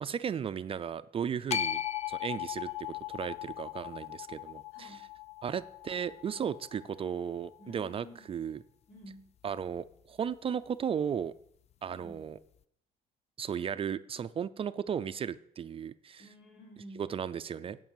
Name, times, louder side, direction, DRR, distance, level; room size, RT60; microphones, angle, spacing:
voice 1, 0.0-1.8 2.1-5.0 5.4-8.6 9.4-11.3 11.8-12.4 13.4-16.2 17.0-17.8, right 7 dB, 35° right, 13 dB, 0.4 m, -35 dB
sound 1, 1.5-7.7, left 10 dB, 40° left, 0.4 m, -38 dB
voice 2, 4.7-5.1 7.6-8.2 8.9-9.3 11.9-12.2 16.2-17.1, equal, 75° left, -3 dB, 4.4 m, -51 dB
9.9 x 5.4 x 7.6 m, 0.69 s
cardioid pair, 110°, 17 cm